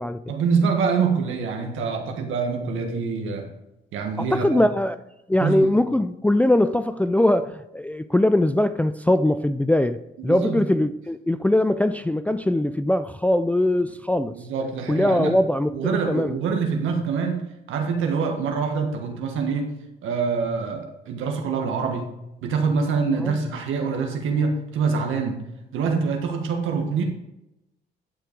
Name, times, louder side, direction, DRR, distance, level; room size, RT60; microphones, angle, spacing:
voice 1, 0.3-3.5 3.9-4.6 5.4-5.7 10.2-10.6 14.3-15.3 15.7-19.7 20.0-22.1 22.4-25.4 25.7-27.0, right 5 dB, 85° right, 1.5 m, -25 dB
voice 2, 4.2-5.0 5.3-14.3 14.9-16.4 23.2-23.4, left 1 dB, 5° left, 0.4 m, -21 dB
11.5 x 4.6 x 5.1 m
cardioid pair, 90°, 20 cm